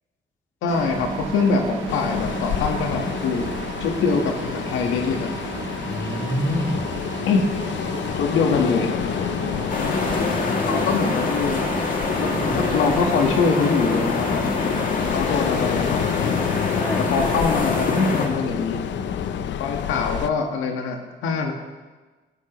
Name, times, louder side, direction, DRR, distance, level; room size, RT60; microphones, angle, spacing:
voice 1, 0.6-3.5 3.8-5.3 7.3-7.5 8.1-8.9 10.7-11.7 12.2-14.4 15.1-16.1 17.0-18.8 19.6-21.5, left 4 dB, 85° left, 3 dB, 1.5 m, -23 dB
sound 1, 0.7-19.5, right 3 dB, 90° right, 2.0 m, -34 dB
Ocean, 1.9-20.3, left 10 dB, 65° left, 0.6 m, -29 dB
voice 2, 5.8-6.8 10.0-10.9 16.8-17.3, left 1 dB, 10° left, -1 dB, 2.5 m, -28 dB
sound 2, 9.7-18.3, left 3 dB, 45° left, 2.4 m, -25 dB
16.0 x 13.5 x 3.1 m, 1.3 s
cardioid pair, 90°, 20 cm